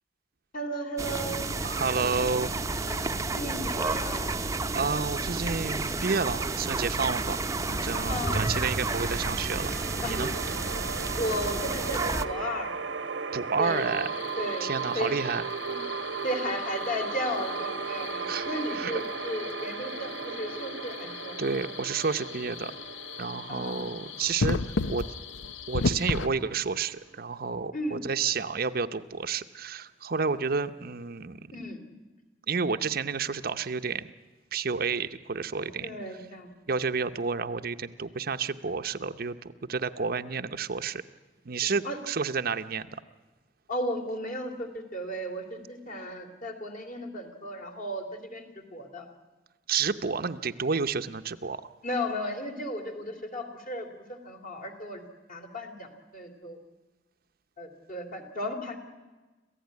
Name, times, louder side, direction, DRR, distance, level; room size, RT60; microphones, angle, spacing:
voice 1, 0.5-1.5 2.9-3.0 3.3-4.3 8.1-8.6 8.9-9.0 10.0-10.2 11.2-12.7 13.6-13.9 14.4-15.1 15.7-15.8 16.2-21.3 23.5-23.9 25.8-25.9 27.7-28.0 31.5-31.8 35.8-36.5 41.6-42.0 42.6-42.7 43.7-49.1 51.8-55.0 55.3-56.6 57.6-58.8, equal, 45° left, 4 dB, 3.0 m, -35 dB
sound 1, 1.0-12.2, right 3 dB, 15° right, 0.7 m, -31 dB
voice 2, 1.6-2.7 4.7-9.7 10.1-10.3 13.3-14.1 14.6-15.5 18.2-18.9 21.4-22.7 23.2-24.6 24.9-25.1 25.7-31.4 32.5-34.1 34.5-35.9 36.7-39.4 39.7-41.0 41.5-42.9 49.7-51.6, right 5 dB, 55° right, 9 dB, 0.7 m, -30 dB
sound 2, 8.2-27.1, right 5 dB, 85° right, 1.1 m, -37 dB
sound 3, 13.6-26.3, left 4 dB, 85° left, 0.7 m, -36 dB
27.0 x 15.5 x 9.5 m, 1.2 s
head